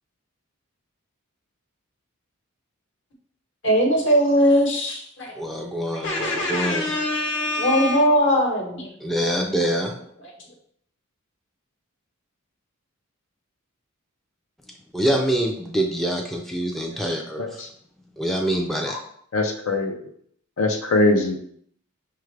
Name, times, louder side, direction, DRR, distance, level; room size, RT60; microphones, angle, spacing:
voice 1, 3.6-5.3 5.9-8.9 10.2-10.3, equal, 60° left, 0 dB, 1.0 m, -21 dB
voice 2, 5.3-6.9 9.0-9.9 14.9-17.6 18.2-19.0, right 1 dB, ahead, 1 dB, 0.3 m, -25 dB
voice 3, 17.4-17.7 18.9-19.0 19.3-20.1 20.6-21.4, left 2 dB, 80° left, 3 dB, 0.5 m, -22 dB
5.6 x 2.3 x 3.2 m, 0.67 s
head